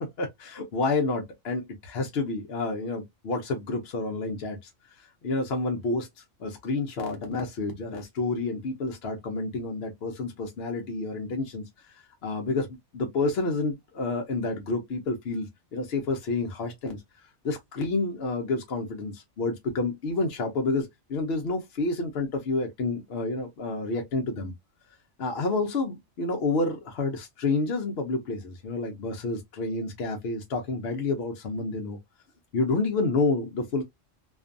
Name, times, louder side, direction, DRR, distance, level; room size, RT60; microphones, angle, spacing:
voice 1, 0.2-4.7 5.0-6.1 6.4-11.9 12.2-12.7 12.9-17.0 17.4-24.5 25.2-32.0 32.5-33.8, left 3 dB, 60° left, 0.8 m, -29 dB
2.5 x 2.3 x 2.4 m
omnidirectional pair, 1.3 m